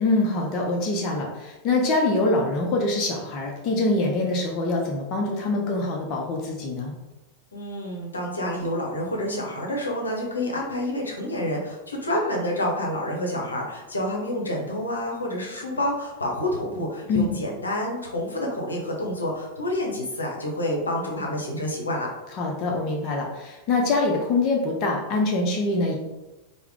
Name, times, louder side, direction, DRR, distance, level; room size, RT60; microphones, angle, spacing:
voice 1, 0.0-6.9 17.1-17.3 22.4-25.9, left 2 dB, 35° left, 0 dB, 0.5 m, -24 dB
voice 2, 7.5-22.1, left 1 dB, 75° left, -1 dB, 0.7 m, -28 dB
3.4 x 2.0 x 3.5 m, 1.0 s
figure-of-eight pair, 90°, 0 cm